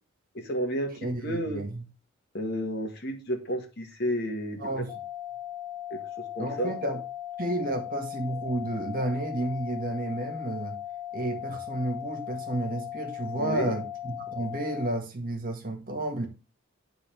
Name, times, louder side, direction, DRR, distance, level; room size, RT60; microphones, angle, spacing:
voice 1, 0.3-1.6 2.3-4.8 5.9-6.7 13.4-13.7, equal, 50° left, 1.7 m, -32 dB
voice 2, 1.0-1.8 4.6-4.9 6.4-7.0 7.4-10.8 11.1-16.3, right 1 dB, 45° right, 1.8 m, -31 dB
sound 1, 4.9-14.9, left 12 dB, 15° right, 2.1 m, -38 dB
9.9 x 4.0 x 5.1 m
head